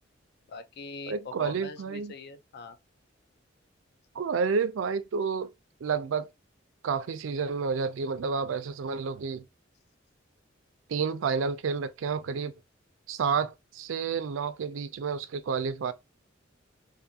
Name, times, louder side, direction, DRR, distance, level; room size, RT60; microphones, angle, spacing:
voice 1, 0.5-2.8, left 4 dB, 55° left, 0.4 m, -42 dB
voice 2, 1.1-2.1 4.1-5.5 5.8-6.3 6.8-9.4 10.9-12.5 13.1-15.9, right 5 dB, 90° right, 0.4 m, -30 dB
2.6 x 2.4 x 2.7 m
head